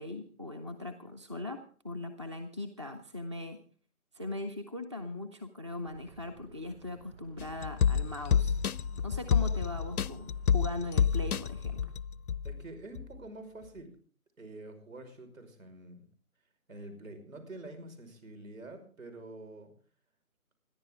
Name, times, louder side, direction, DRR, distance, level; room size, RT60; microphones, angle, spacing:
voice 1, 0.0-3.6 4.1-8.5 9.0-11.9, left 2 dB, 20° right, 7 dB, 0.6 m, -40 dB
sound 1, 5.8-11.9, right 5 dB, 35° right, 4.9 m, -55 dB
sound 2, 7.4-12.6 13.0-13.1, left 7 dB, 80° left, 0.6 m, -29 dB
voice 2, 12.4-13.9 14.4-16.1 16.7-19.7, right 2 dB, 65° right, 7 dB, 5.4 m, -47 dB
28.0 x 11.0 x 3.7 m, 0.42 s
figure-of-eight pair, 155°, 44 cm